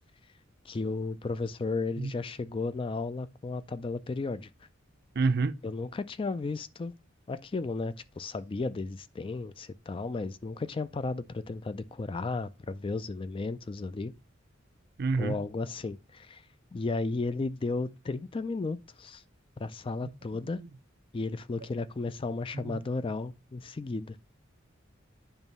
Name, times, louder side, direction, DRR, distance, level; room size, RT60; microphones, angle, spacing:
voice 1, 0.7-4.5 5.6-6.9 7.3-14.1 15.2-16.4 16.7-19.2 19.6-20.6 21.1-24.2, left 3 dB, 25° left, 0.3 m, -34 dB
voice 2, 5.2-5.6 15.0-15.4 20.3-20.7 22.5-22.7, right 4 dB, 55° right, 0.6 m, -29 dB
8.9 x 3.0 x 5.3 m
head